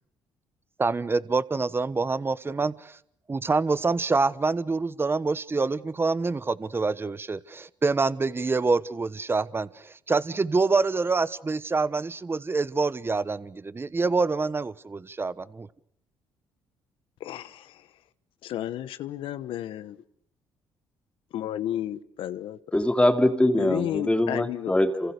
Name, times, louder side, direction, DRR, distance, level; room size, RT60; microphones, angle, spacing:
voice 1, 0.8-3.0 3.3-15.3, right 3 dB, 25° right, 1.1 m, -26 dB
voice 2, 17.2-17.8 18.4-20.0 21.3-22.6 23.6-24.7, left 12 dB, 75° left, 1.2 m, -32 dB
voice 3, 22.7-25.1, left 1 dB, 10° left, 2.4 m, -23 dB
29.0 x 27.5 x 6.7 m
supercardioid pair, 65°, 9 cm